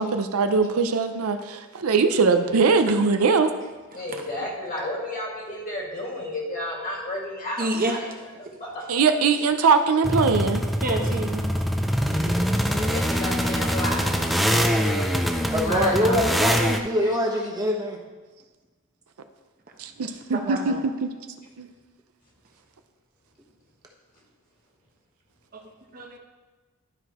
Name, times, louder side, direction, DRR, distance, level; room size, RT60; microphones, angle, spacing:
voice 1, 0.0-3.5 8.9-10.6 19.8-20.7 21.0-21.1 21.6-21.7, right 4 dB, 85° right, 8 dB, 0.5 m, -21 dB
voice 2, 3.9-8.1 8.4-8.9 12.7-16.7 17.0-17.2, left 1 dB, 40° left, -3 dB, 2.1 m, -33 dB
voice 3, 7.6-8.0 10.5-11.5 12.1-12.4 20.3-20.8 25.5-25.6 25.9-26.2, right 2 dB, 45° right, 2 dB, 0.9 m, -29 dB
sound 1, 10.0-16.8, equal, ahead, 0.4 m, -24 dB
voice 4, 15.5-18.0, equal, 20° right, -1 dB, 1.1 m, -24 dB
12.0 x 4.7 x 3.0 m, 1.3 s
head